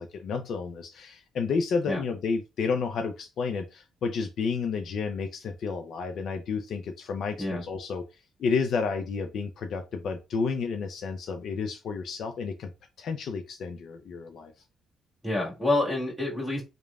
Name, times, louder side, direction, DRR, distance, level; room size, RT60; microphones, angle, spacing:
voice 1, 0.0-8.0 8.4-12.7 13.0-14.5, left 5 dB, 65° left, 0.4 m, -31 dB
voice 2, 15.2-16.6, left 2 dB, ahead, 1.7 m, -27 dB
3.2 x 2.1 x 2.4 m
cardioid pair, 90°, 0 cm